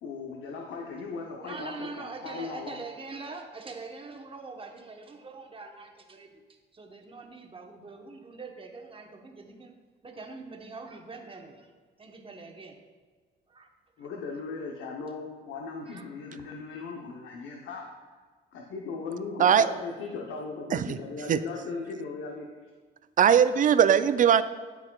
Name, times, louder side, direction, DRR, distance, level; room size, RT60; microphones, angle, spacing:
voice 1, 0.0-2.8 14.0-17.9 18.5-22.5, left 4 dB, 80° left, 1 dB, 0.8 m, -38 dB
voice 2, 1.4-6.4 6.7-9.7 10.0-11.7 12.0-12.8 13.5-14.1 15.8-16.1, right 3 dB, 25° right, 3 dB, 1.0 m, -43 dB
voice 3, 23.2-24.4, right 8 dB, 40° right, 13 dB, 0.4 m, -20 dB
12.0 x 4.6 x 2.3 m, 1.5 s
cardioid pair, 90°, 20 cm